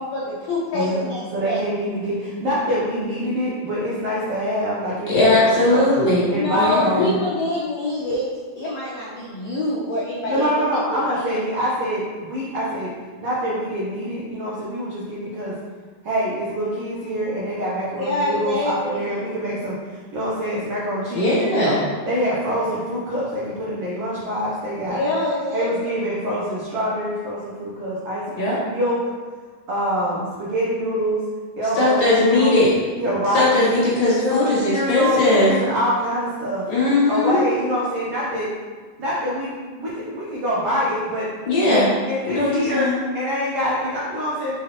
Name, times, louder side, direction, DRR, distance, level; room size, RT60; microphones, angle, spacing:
voice 1, 0.0-1.6 6.2-8.2 8.6-10.5 11.1-11.4 17.9-19.3 24.9-26.1, left 1 dB, 75° left, -6 dB, 1.5 m, -25 dB
voice 2, 1.3-5.9 6.3-7.1 10.2-12.9 13.2-15.5 16.0-25.0 25.5-29.0 29.7-31.2 31.6-32.6 33.0-33.5 34.2-36.6 37.1-38.5 39.0-39.5 39.8-41.3 41.7-44.6, equal, 80° right, -7 dB, 1.3 m, -25 dB
voice 3, 5.1-6.3 6.5-7.1 21.1-21.8 28.4-28.6 31.8-32.7 33.3-35.5 36.7-37.4 41.5-41.9 42.3-43.0, left 2 dB, 50° left, -7 dB, 2.4 m, -19 dB
6.3 x 4.9 x 3.0 m, 1.5 s
omnidirectional pair, 4.2 m